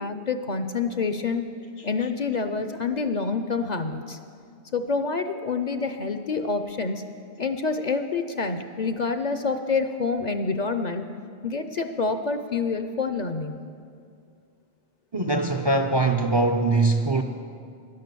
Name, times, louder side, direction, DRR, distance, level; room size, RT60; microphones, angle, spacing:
voice 1, 0.0-1.5 1.8-4.2 4.7-7.0 7.4-11.0 11.4-13.6, left 4 dB, 50° left, 8 dB, 0.6 m, -27 dB
voice 2, 15.1-17.2, right 2 dB, 35° right, 6 dB, 0.4 m, -22 dB
12.5 x 11.0 x 6.8 m, 2.4 s
omnidirectional pair, 1.1 m